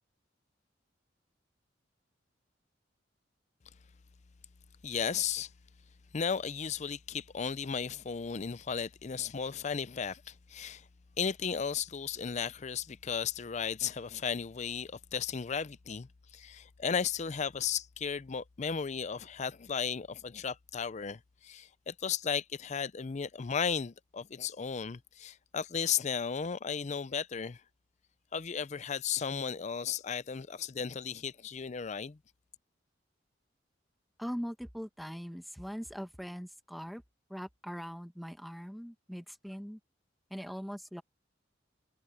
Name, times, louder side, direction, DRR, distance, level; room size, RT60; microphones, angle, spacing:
voice 1, 4.8-5.5 6.1-10.9 11.2-27.6 28.3-32.2, left 6 dB, 40° left, 0.5 m, -35 dB
voice 2, 34.2-37.0 37.3-39.8 40.3-41.0, equal, ahead, 1.3 m, -41 dB
head